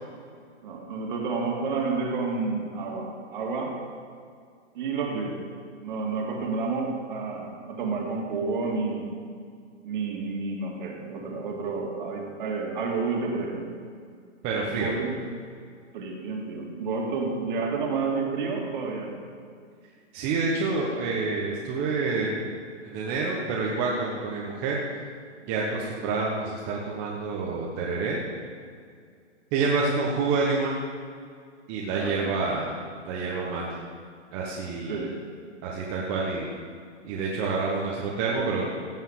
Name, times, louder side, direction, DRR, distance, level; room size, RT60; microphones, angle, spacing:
voice 1, 0.6-3.8 4.7-5.5 5.8-9.2 9.8-13.8 14.7-15.2 15.9-19.2 31.9-32.4 34.9-35.2, right 4 dB, 40° right, 1 dB, 2.2 m, -30 dB
voice 2, 14.4-14.9 20.1-24.8 25.4-28.2 29.5-30.7 31.7-32.8 33.0-33.8 34.3-35.0 35.6-36.5 37.0-38.7, right 4 dB, 20° right, -3 dB, 1.0 m, -28 dB
16.0 x 5.5 x 7.2 m, 2.2 s
hypercardioid pair, 160°, 36 cm